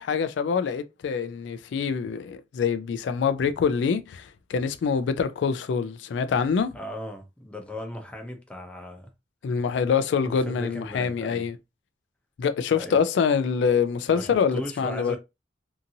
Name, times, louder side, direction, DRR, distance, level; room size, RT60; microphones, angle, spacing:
voice 1, 0.0-6.7 9.4-11.5 12.4-15.1, left 6 dB, 75° left, 0.3 m, -25 dB
voice 2, 6.7-9.1 10.2-11.4 12.7-13.0 14.1-15.2, equal, 5° left, 0.6 m, -37 dB
2.7 x 2.5 x 2.6 m
head